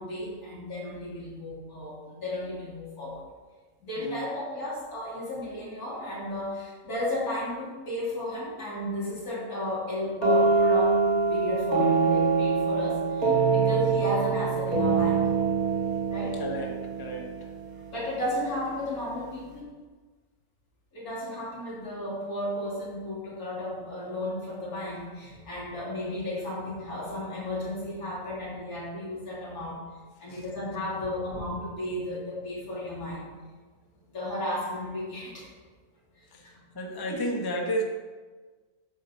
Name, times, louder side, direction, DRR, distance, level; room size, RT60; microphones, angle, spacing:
voice 1, 0.0-3.2 3.8-15.2 16.1-16.4 17.9-19.7 20.9-29.9 30.2-33.3 34.1-35.5 36.1-36.6 37.1-37.3, left 1 dB, 80° left, -6 dB, 3.3 m, -34 dB
sound 1, 10.2-17.9, right 4 dB, 75° right, 2.6 m, -24 dB
voice 2, 16.4-17.5 30.3-30.4 36.3-36.4 36.7-37.8, equal, 15° left, 1 dB, 1.0 m, -32 dB
8.4 x 5.1 x 6.9 m, 1.4 s
omnidirectional pair, 1.6 m